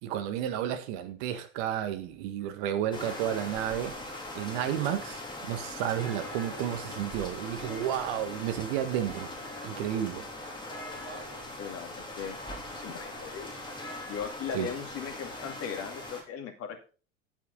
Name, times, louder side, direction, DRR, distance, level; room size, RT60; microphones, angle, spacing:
voice 1, 0.0-3.9 4.3-9.3 9.6-10.2 14.5-14.7, right 10 dB, 50° right, 1.6 m, -32 dB
sound 1, 2.9-16.2, left 1 dB, 10° left, 3.0 m, -40 dB
voice 2, 11.6-12.4 12.7-13.5 14.1-16.9, left 7 dB, 35° left, 2.3 m, -38 dB
9.2 x 8.8 x 3.9 m
figure-of-eight pair, 80°, 39 cm